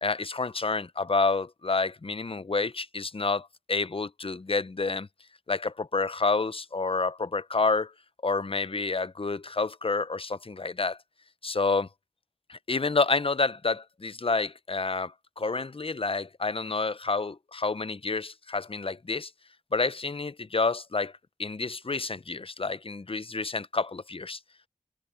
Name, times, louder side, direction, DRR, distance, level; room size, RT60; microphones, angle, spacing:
voice 1, 0.0-5.1 5.5-7.9 8.2-11.0 11.4-11.9 12.5-19.3 19.7-21.1 21.4-24.4, left 3 dB, 45° left, 0.6 m, -29 dB
wide cardioid pair, 45°, 13 cm